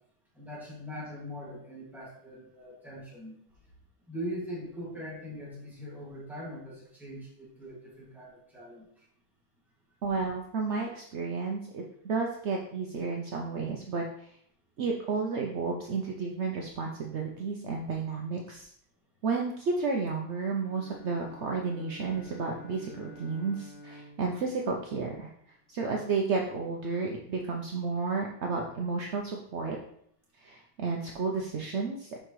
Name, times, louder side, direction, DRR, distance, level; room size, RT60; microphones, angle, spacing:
voice 1, 0.4-3.4 4.1-8.9, equal, ahead, -6 dB, 1.8 m, -41 dB
voice 2, 10.0-14.3 14.8-18.7 19.2-25.3 25.7-29.8 30.4-32.2, right 4 dB, 65° right, 0 dB, 0.6 m, -32 dB
Bowed string instrument, 20.5-25.7, equal, 85° left, 1.7 m, -51 dB
6.5 x 5.1 x 3.1 m, 0.67 s
omnidirectional pair, 1.9 m